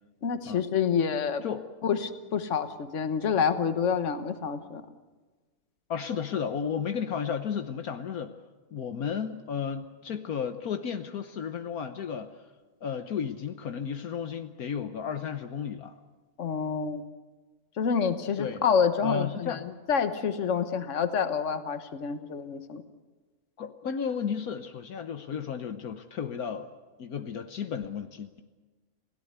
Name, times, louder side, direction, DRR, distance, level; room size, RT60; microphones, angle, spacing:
voice 1, 0.2-1.4 1.8-4.8 16.4-17.0 17.8-19.6 19.9-22.8, left 6 dB, 55° left, 9 dB, 1.5 m, -28 dB
voice 2, 5.9-8.3 8.7-12.3 12.8-15.9 18.4-18.6 19.0-19.6 23.6-26.7 27.0-28.4, left 7 dB, 75° left, 8 dB, 1.4 m, -33 dB
29.0 x 17.0 x 8.1 m, 1.3 s
omnidirectional pair, 1.6 m